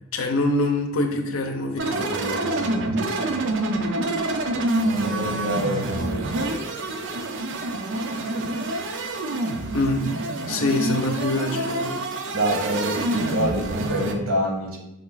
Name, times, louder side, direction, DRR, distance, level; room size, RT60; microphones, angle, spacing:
voice 1, 0.1-2.1 9.7-10.0 10.5-12.0, left 2 dB, 90° left, 4 dB, 0.6 m, -24 dB
sound 1, 1.8-14.1, right 2 dB, 60° right, 0.5 m, -27 dB
voice 2, 1.9-3.4 4.8-6.6 12.3-14.8, equal, 85° right, 1 dB, 1.0 m, -27 dB
4.9 x 2.3 x 3.8 m, 0.87 s
head